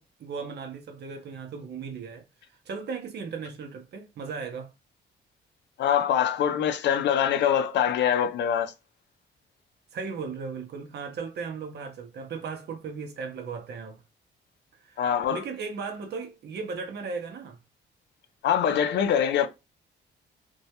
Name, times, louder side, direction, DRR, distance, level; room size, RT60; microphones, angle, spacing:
voice 1, 0.0-4.7 9.9-14.0 14.8-17.6, right 5 dB, 55° right, 0.6 m, -37 dB
voice 2, 5.8-8.7 15.0-15.4 18.4-19.5, left 9 dB, 65° left, 0.5 m, -24 dB
2.2 x 2.1 x 2.7 m
cardioid pair, 90°, 20 cm